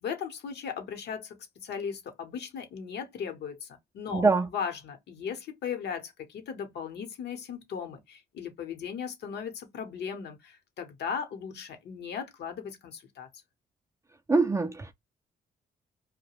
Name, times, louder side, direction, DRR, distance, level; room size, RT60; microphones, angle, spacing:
voice 1, 0.0-4.2 4.5-13.3, left 7 dB, 70° left, 0.8 m, -37 dB
voice 2, 4.1-4.5 14.3-14.9, right 3 dB, 15° right, 0.3 m, -23 dB
2.3 x 2.1 x 2.9 m
cardioid pair, 85°, 18 cm